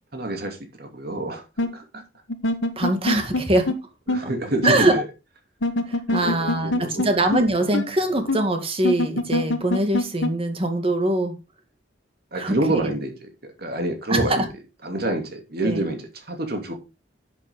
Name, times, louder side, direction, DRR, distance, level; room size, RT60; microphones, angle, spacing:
voice 1, 0.1-1.4 1.7-2.0 4.1-5.1 6.1-7.1 7.6-7.7 12.3-14.5 14.8-16.7, right 1 dB, 55° right, 2.7 m, -28 dB
sound 1, 1.6-1.7 2.3-3.4 3.7-3.8 4.1-4.2 4.6-4.7 5.6-7.1 7.3-7.4 7.7-7.8 8.3-8.4 8.8-10.3, left 2 dB, 80° left, 1.3 m, -23 dB
voice 2, 2.8-3.8 4.6-5.0 5.9-11.4 12.3-12.9 14.1-14.5 15.6-15.9, right 1 dB, 30° right, 2.0 m, -23 dB
10.5 x 7.5 x 3.7 m
head